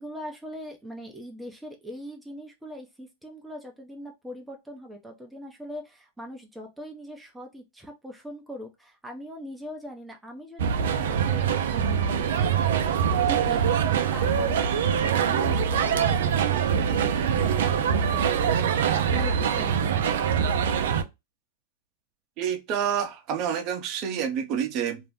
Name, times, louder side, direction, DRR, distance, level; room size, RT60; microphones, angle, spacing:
voice 1, 0.0-12.6 13.3-20.3, equal, 5° right, 0.6 m, -41 dB
sound 1, 10.6-21.0, right 7 dB, 75° right, 0.4 m, -24 dB
voice 2, 22.4-25.0, right 8 dB, 45° right, 0.7 m, -28 dB
2.5 x 2.1 x 3.4 m
hypercardioid pair, 120°, 0 cm